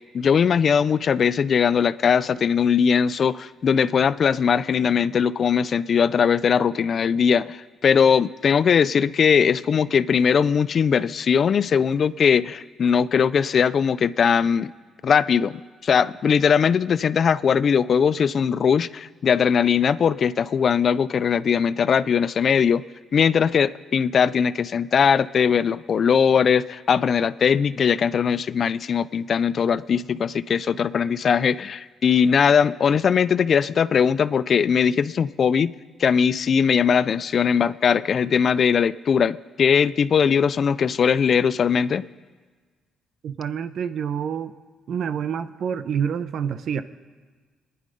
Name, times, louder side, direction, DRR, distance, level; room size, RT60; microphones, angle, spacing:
voice 1, 0.1-14.7 15.0-22.8 23.1-35.7 36.0-42.0, left 7 dB, 50° left, 17 dB, 0.4 m, -20 dB
voice 2, 43.2-44.5 44.9-46.8, right 7 dB, 65° right, 12 dB, 0.8 m, -27 dB
26.0 x 10.0 x 5.2 m, 1.5 s
cardioid pair, 90°, 0 cm